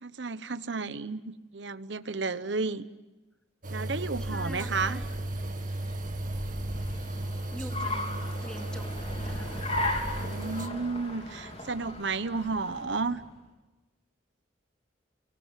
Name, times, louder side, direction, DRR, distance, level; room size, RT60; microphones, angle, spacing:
voice 1, 0.0-1.2 1.5-2.8 3.7-5.0 10.1-13.2, right 4 dB, 65° right, 13 dB, 1.1 m, -32 dB
sound 1, 3.6-10.7, right 1 dB, 45° right, 1.7 m, -35 dB
Car, 3.9-13.3, left 1 dB, 35° left, 3.9 m, -37 dB
voice 2, 4.2-5.1 7.5-9.7, equal, 5° left, 3 dB, 2.6 m, -44 dB
29.5 x 24.0 x 7.5 m, 1.1 s
head